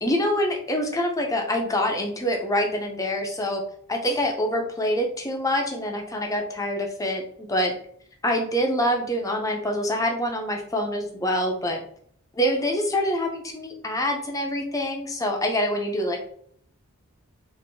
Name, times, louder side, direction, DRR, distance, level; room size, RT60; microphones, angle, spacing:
voice 1, 0.0-3.6 3.9-7.7 8.2-11.9 12.3-16.2, equal, 15° left, 2 dB, 0.6 m, -25 dB
4.4 x 2.5 x 2.7 m, 0.65 s
head